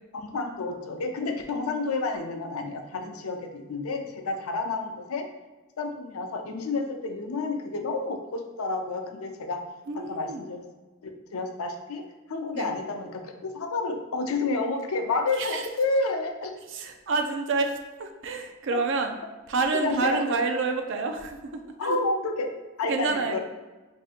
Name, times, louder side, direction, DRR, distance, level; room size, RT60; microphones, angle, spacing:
voice 1, 0.1-5.3 5.8-9.6 9.9-10.6 11.0-16.6 18.7-18.8 19.8-20.4 21.8-22.5 22.8-23.4, left 3 dB, 85° left, 5 dB, 0.5 m, -30 dB
voice 2, 9.9-10.4 12.5-12.7 15.4-15.7 16.7-17.7 18.0-19.1 19.5-22.0 22.9-23.4, right 3 dB, 60° right, 6 dB, 0.4 m, -28 dB
4.9 x 2.7 x 2.4 m, 1.2 s
head